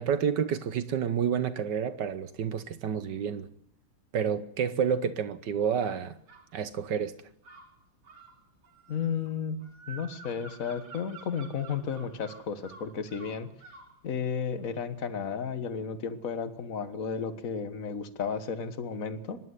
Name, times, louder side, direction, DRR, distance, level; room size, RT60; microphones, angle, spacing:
voice 1, 0.0-3.5 4.1-6.1 6.5-7.1, right 7 dB, 60° right, 1.4 m, -29 dB
sound 1, 5.8-6.5 7.4-14.0, right 4 dB, 85° right, 3.5 m, -50 dB
voice 2, 8.9-9.6 9.9-13.5 14.0-19.4, left 6 dB, 45° left, 1.6 m, -33 dB
24.5 x 11.0 x 9.6 m
omnidirectional pair, 2.4 m